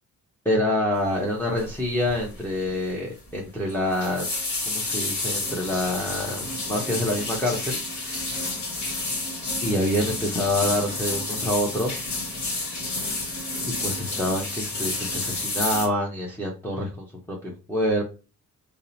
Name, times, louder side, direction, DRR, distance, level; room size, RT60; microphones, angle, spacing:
voice 1, 0.4-7.8 9.6-12.0 13.8-18.0, left 1 dB, 5° left, -4 dB, 0.7 m, -26 dB
sound 1, 1.6-1.8 2.1-2.4 2.7-2.8 3.7-15.9, left 2 dB, 55° left, 1.3 m, -30 dB
2.8 x 2.0 x 2.6 m, 0.32 s
cardioid pair, 70°, 34 cm